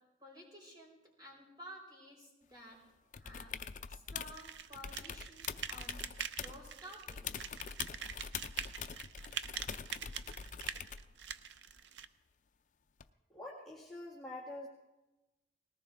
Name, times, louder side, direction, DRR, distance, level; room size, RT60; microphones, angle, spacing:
voice 1, 0.2-2.8 3.2-7.5, equal, 25° right, -4 dB, 5.2 m, -53 dB
sound 1, 3.1-4.4 4.7-6.7 7.1-11.1 13.0-13.1, left 7 dB, 45° left, 0.5 m, -44 dB
sound 2, 4.3-12.1, right 8 dB, 85° right, 0.6 m, -44 dB
voice 2, 13.3-14.7, left 1 dB, ahead, -6 dB, 1.6 m, -46 dB
20.0 x 18.0 x 3.5 m, 1.0 s
head